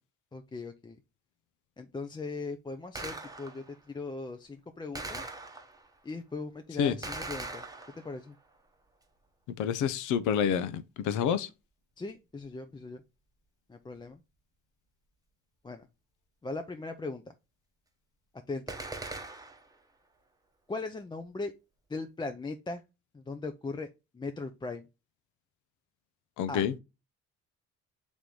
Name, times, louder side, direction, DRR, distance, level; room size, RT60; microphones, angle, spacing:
voice 1, 0.3-1.0 1.8-5.3 6.0-7.6 8.0-8.4 12.0-13.0 13.7-14.2 15.6-15.9 16.4-17.3 18.5-18.6 20.7-21.5 21.9-22.8 23.1-23.9 24.1-24.8 26.5-26.6, left 3 dB, 15° left, 0.4 m, -39 dB
Gunshot gunfire, 3.0-3.8 5.0-5.9 7.0-8.3 18.7-19.8, right 2 dB, 10° right, 0.8 m, -40 dB
voice 2, 9.6-11.5 26.4-26.7, left 8 dB, 85° left, 0.6 m, -28 dB
3.4 x 3.0 x 3.8 m
cardioid pair, 90°, 30 cm